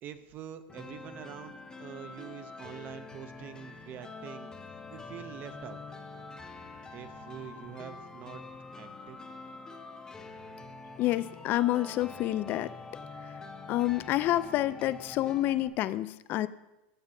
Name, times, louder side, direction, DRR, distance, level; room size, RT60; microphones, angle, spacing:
voice 1, 0.0-4.5 4.9-5.8 6.9-8.4 8.8-9.2, right 9 dB, 35° right, 11 dB, 0.5 m, -45 dB
sound 1, 0.7-15.7, left 3 dB, 15° left, 0.7 m, -45 dB
voice 2, 11.0-12.7 13.7-16.5, left 14 dB, 40° left, 16 dB, 0.3 m, -28 dB
14.0 x 5.3 x 2.7 m, 0.98 s
supercardioid pair, 130°, 5 cm